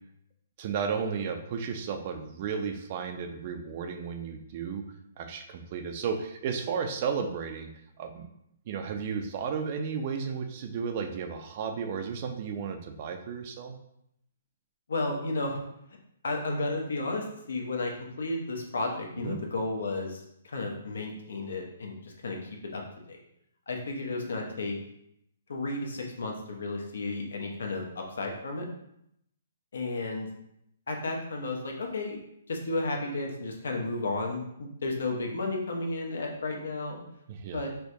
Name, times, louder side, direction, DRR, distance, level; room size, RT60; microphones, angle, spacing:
voice 1, 0.6-4.8 5.2-7.7 8.0-8.3 8.7-13.7 19.2-19.4 37.3-37.6, right 6 dB, 40° right, 6 dB, 0.4 m, -33 dB
voice 2, 14.9-15.6 16.2-22.8 23.1-23.2 23.7-24.8 25.5-28.7 29.7-30.3 30.9-32.2 32.5-37.0 37.5-37.7, left 2 dB, 80° left, 2 dB, 0.8 m, -33 dB
4.4 x 2.2 x 2.7 m, 0.76 s
hypercardioid pair, 155°, 0 cm